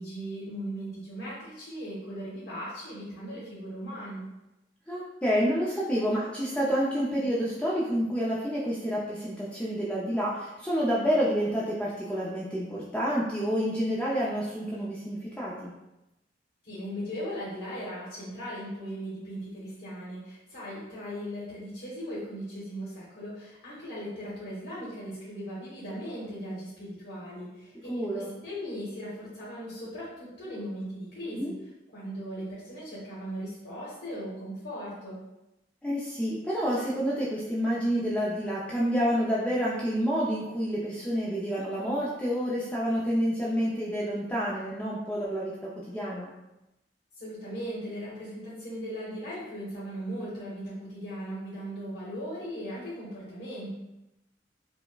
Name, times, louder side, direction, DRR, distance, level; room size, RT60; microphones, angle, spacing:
voice 1, 0.0-4.2 16.6-31.5 31.9-35.2 47.2-53.8, equal, 65° left, -9 dB, 1.0 m, -38 dB
voice 2, 4.9-15.7 27.9-28.3 31.3-31.5 35.8-46.3, equal, 5° left, -7 dB, 0.4 m, -29 dB
4.5 x 2.0 x 2.2 m, 0.94 s
head